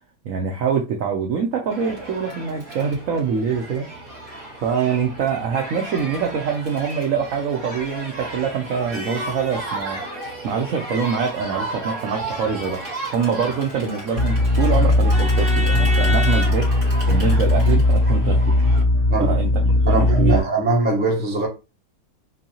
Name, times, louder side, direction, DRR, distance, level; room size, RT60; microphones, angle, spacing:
voice 1, 0.2-3.9 4.6-10.0 10.4-12.8 13.1-16.7 17.1-18.6 19.2-20.5, right 6 dB, 75° right, 0.7 m, -24 dB
Crowd, 1.7-18.8, right 1 dB, 50° right, 2.2 m, -32 dB
sound 1, 14.2-20.4, left 2 dB, 50° left, 2.0 m, -18 dB
voice 2, 19.9-21.5, right 2 dB, 10° right, 0.4 m, -21 dB
3.9 x 2.7 x 2.8 m
omnidirectional pair, 2.1 m